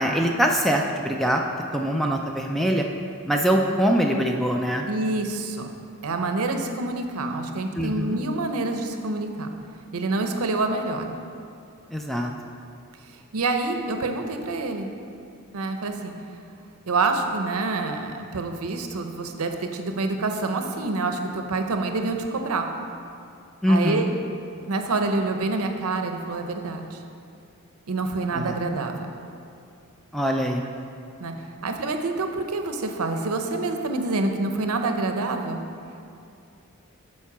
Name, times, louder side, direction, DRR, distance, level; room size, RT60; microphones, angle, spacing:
voice 1, 0.0-1.4 1.7-2.9 3.3-4.9 7.7-8.2 11.9-12.3 23.6-24.1 28.3-28.5 30.1-30.6, equal, ahead, 1 dB, 0.3 m, -23 dB
voice 2, 4.9-5.7 6.0-9.5 9.9-11.1 13.3-14.9 15.5-16.1 16.9-22.7 23.7-24.1 24.7-27.0 27.9-28.9 31.2-31.3 31.6-35.6, right 3 dB, 80° right, 5 dB, 0.6 m, -27 dB
7.3 x 4.5 x 6.0 m, 2.5 s
head